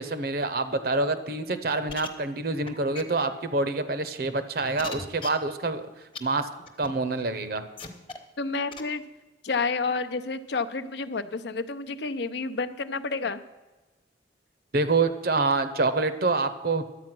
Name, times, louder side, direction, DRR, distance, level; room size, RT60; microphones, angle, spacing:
voice 1, 0.0-5.8 6.2-6.5 6.8-7.6 14.7-16.9, right 3 dB, 55° right, 11 dB, 0.8 m, -26 dB
sound 1, 1.9-2.1 2.7-2.8 2.9-3.0 3.8-3.9 4.8-5.3 6.1-6.2 6.7-6.9 7.8-8.2 8.7-8.8, left 4 dB, 30° left, 0.9 m, -36 dB
voice 2, 8.4-9.0 9.4-13.4, left 4 dB, 70° left, 11 dB, 0.6 m, -30 dB
11.0 x 8.3 x 6.0 m, 1.1 s
head